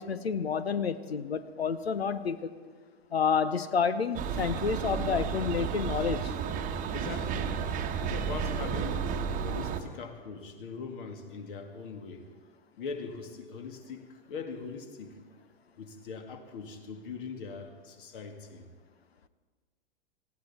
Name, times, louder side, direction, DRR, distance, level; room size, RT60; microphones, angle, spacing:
voice 1, 0.0-2.5 3.1-6.3, left 6 dB, 80° left, 14 dB, 0.8 m, -29 dB
sound 1, 4.1-9.8, right 7 dB, 25° right, 1.1 m, -32 dB
voice 2, 6.9-7.6 8.0-9.0 9.4-12.3 12.8-15.2 15.8-18.6, left 5 dB, 55° left, 5 dB, 2.1 m, -41 dB
19.0 x 15.0 x 4.3 m, 1.5 s
figure-of-eight pair, 105°, 31 cm